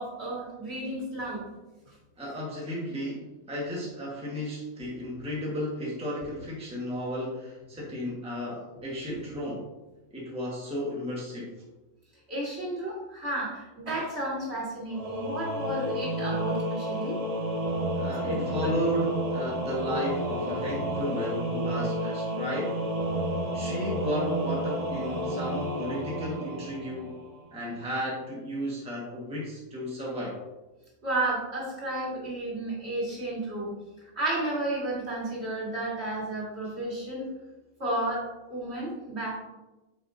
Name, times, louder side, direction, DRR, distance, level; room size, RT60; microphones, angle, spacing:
voice 1, 0.0-1.4 9.1-9.2 12.3-17.1 18.2-18.8 31.0-33.7 34.2-37.3 37.8-39.3, right 1 dB, 50° right, -5 dB, 2.3 m, -32 dB
voice 2, 2.2-9.7 10.1-11.5 17.9-22.8 23.5-27.2 27.5-30.4, equal, 5° right, -4 dB, 1.3 m, -34 dB
Singing / Musical instrument, 14.9-27.4, equal, 30° right, 1.0 m, -31 dB
8.2 x 5.5 x 2.6 m, 1.1 s
omnidirectional pair, 1.4 m